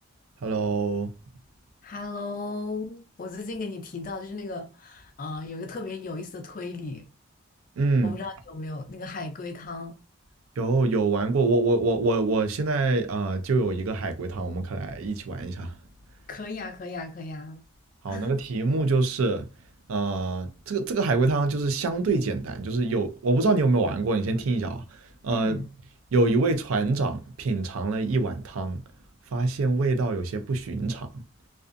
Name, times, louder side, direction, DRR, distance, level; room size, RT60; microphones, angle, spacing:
voice 1, 0.4-1.1 7.8-8.1 10.6-15.7 18.0-19.5 19.9-24.8 25.2-25.6 26.1-28.8 29.3-31.2, right 3 dB, 80° right, 0.4 m, -25 dB
voice 2, 1.8-7.0 8.0-10.0 16.3-17.6 18.1-18.3 25.3-25.7, left 3 dB, 40° left, 0.4 m, -36 dB
2.4 x 2.2 x 2.5 m
head